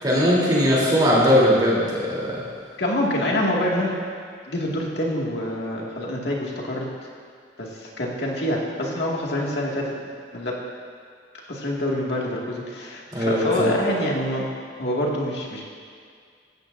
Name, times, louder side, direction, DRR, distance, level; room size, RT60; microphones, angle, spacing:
voice 1, 0.0-2.4 13.1-13.7, equal, 25° right, -6 dB, 3.4 m, -19 dB
voice 2, 2.8-3.9 4.5-6.9 7.6-9.9 10.3-10.5 11.5-14.5 14.8-15.6, left 1 dB, 65° left, -3 dB, 2.2 m, -26 dB
15.5 x 14.5 x 2.7 m, 2.1 s
head